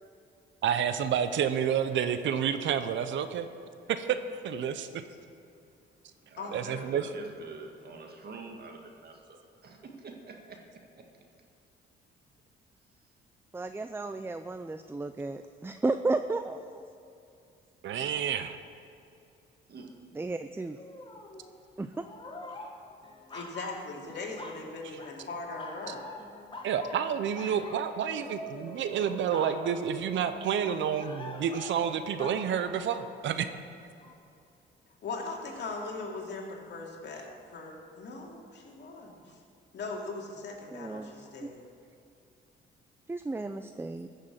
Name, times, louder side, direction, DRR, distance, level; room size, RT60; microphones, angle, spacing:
voice 1, 0.6-3.5 3.9-4.1 4.4-4.9 6.5-7.0 17.8-18.6 26.6-33.5, right 8 dB, 70° right, 10 dB, 0.8 m, -29 dB
voice 2, 6.3-11.1 19.7-20.3, right 3 dB, 50° right, 2 dB, 2.0 m, -46 dB
voice 3, 13.5-16.9 20.1-20.8 21.8-22.1 40.7-41.1 41.4-41.5 43.1-44.1, right 3 dB, 10° right, 9 dB, 0.4 m, -33 dB
sound 1, 20.8-21.5 21.9-24.7 25.0-25.3 25.6-33.5 34.0-34.1, left 1 dB, 25° left, 1.8 m, -45 dB
voice 4, 23.3-26.0 35.0-39.3 39.7-41.6, left 3 dB, 60° left, -1 dB, 2.6 m, -39 dB
14.5 x 6.6 x 7.5 m, 2.6 s
cardioid pair, 90°, 20 cm